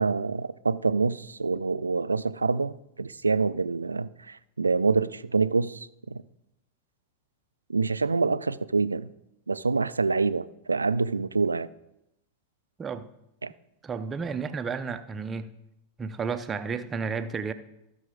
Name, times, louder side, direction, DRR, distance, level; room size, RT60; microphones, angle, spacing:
voice 1, 0.0-5.9 7.7-9.1 9.5-11.7 13.4-13.5, right 4 dB, 80° right, 0.3 m, -26 dB
voice 2, 13.8-15.5 16.0-17.5, right 5 dB, 20° right, 0.6 m, -32 dB
15.5 x 6.1 x 3.7 m
figure-of-eight pair, 90°, 0 cm